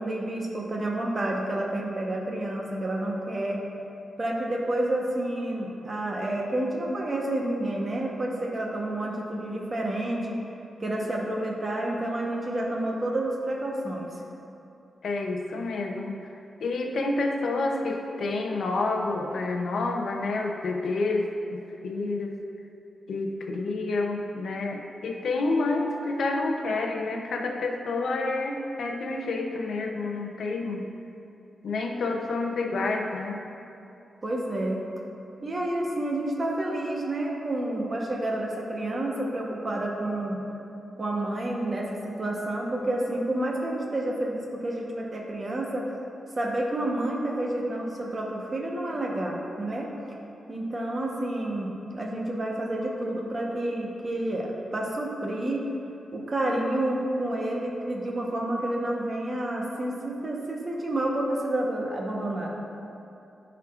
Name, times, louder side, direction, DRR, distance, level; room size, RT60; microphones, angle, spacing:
voice 1, 0.0-3.6 4.2-10.4 10.8-14.2 34.2-34.8 35.4-40.4 41.0-45.9 46.4-49.9 50.5-55.6 56.1-62.5, right 1 dB, 30° right, -1 dB, 1.0 m, -29 dB
voice 2, 15.0-16.3 16.6-22.4 23.1-30.8 31.6-33.4, left 3 dB, 70° left, 1 dB, 0.7 m, -29 dB
13.0 x 4.7 x 2.5 m, 2.7 s
wide cardioid pair, 140°, 0 cm